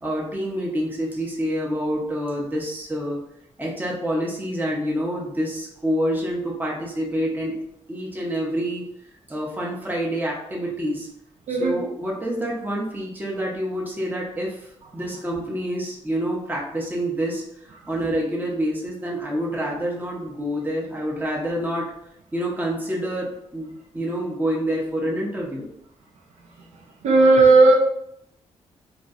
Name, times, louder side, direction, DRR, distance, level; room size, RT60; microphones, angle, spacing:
voice 1, 0.0-3.2 3.6-7.6 7.9-8.9 9.3-11.1 11.5-17.4 17.9-21.9 22.3-25.7, equal, 15° right, -3 dB, 0.7 m, -27 dB
voice 2, 11.5-11.8 27.0-27.7, right 3 dB, 80° right, 1 dB, 0.7 m, -14 dB
2.9 x 2.6 x 2.4 m, 0.75 s
cardioid pair, 85°, 12 cm